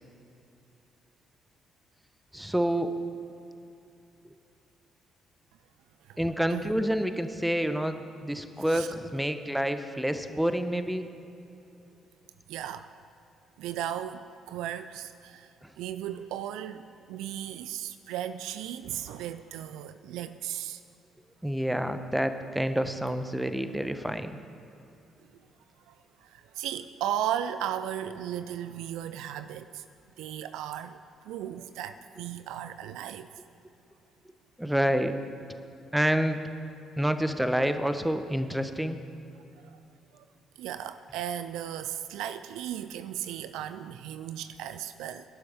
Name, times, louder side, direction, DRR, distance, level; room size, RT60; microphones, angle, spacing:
voice 1, 2.3-2.9 6.2-11.1 15.6-15.7 21.4-24.4 34.6-35.1 35.9-36.4 37.0-39.0, equal, 5° right, 9 dB, 1.0 m, -28 dB
voice 2, 12.5-12.9 13.6-15.5 15.8-20.8 25.9-26.0 26.2-29.8 30.2-33.3 39.6-39.8 40.1-40.2 40.6-45.2, right 10 dB, 70° right, 12 dB, 0.4 m, -36 dB
23.5 x 11.5 x 3.6 m, 2.8 s
figure-of-eight pair, 45°, 0 cm